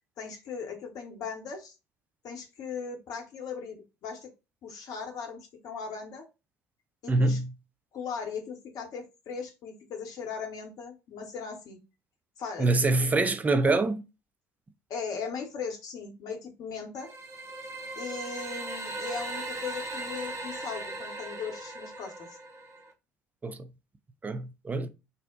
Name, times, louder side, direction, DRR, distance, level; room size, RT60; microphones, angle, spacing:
voice 1, 0.2-1.7 2.2-4.3 4.6-6.2 7.0-7.4 7.9-11.8 12.4-12.7 13.0-13.1 14.9-17.1 18.0-22.3, left 5 dB, 45° left, 0.9 m, -38 dB
voice 2, 7.1-7.5 12.6-14.0 23.4-23.7 24.2-24.9, right 2 dB, 20° right, 0.4 m, -25 dB
sound 1, 17.0-22.9, right 2 dB, 35° right, 0.8 m, -38 dB
2.7 x 2.1 x 3.7 m
figure-of-eight pair, 55°, 9 cm